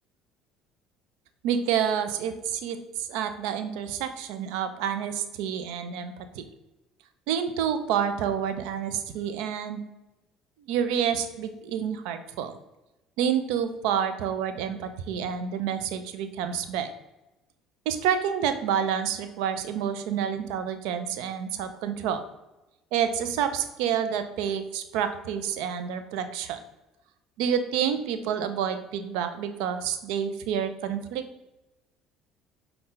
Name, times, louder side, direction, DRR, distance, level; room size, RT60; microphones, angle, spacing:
voice 1, 1.4-6.4 7.3-9.8 10.7-12.6 13.2-16.9 17.9-22.2 22.9-26.6 27.4-31.2, right 8 dB, 75° right, 9 dB, 0.4 m, -28 dB
5.3 x 2.2 x 3.7 m, 0.98 s
hypercardioid pair, 65°, 0 cm